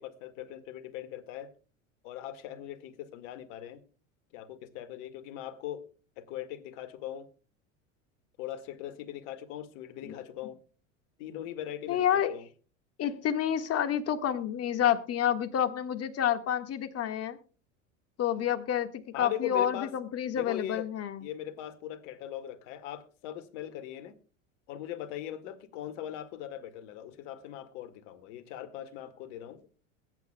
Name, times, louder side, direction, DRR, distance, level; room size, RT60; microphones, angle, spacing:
voice 1, 0.0-1.5 2.0-3.8 4.3-5.8 6.2-7.3 8.4-10.6 11.2-12.5 19.1-19.9 20.3-20.9 21.2-24.1 24.7-29.7, left 11 dB, 60° left, 9 dB, 2.0 m, -40 dB
voice 2, 11.9-12.3 13.0-17.4 18.2-21.3, left 9 dB, 35° left, 9 dB, 1.7 m, -29 dB
22.0 x 9.2 x 2.2 m, 0.37 s
hypercardioid pair, 85°, 40 cm